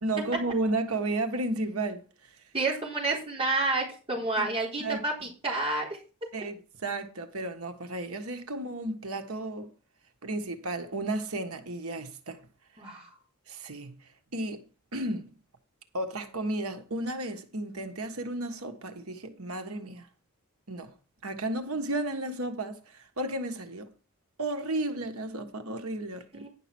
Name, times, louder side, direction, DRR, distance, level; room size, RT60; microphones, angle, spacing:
voice 1, 0.0-2.0 4.4-4.5 4.8-5.0 6.3-9.7 10.2-12.4 13.5-15.3 15.9-20.1 20.7-20.9 21.2-23.9 24.4-26.5, right 2 dB, 85° right, 1.5 m, -33 dB
voice 2, 2.5-6.0 12.8-13.1 26.3-26.5, right 2 dB, 25° right, 3.9 m, -29 dB
10.5 x 6.0 x 6.1 m
head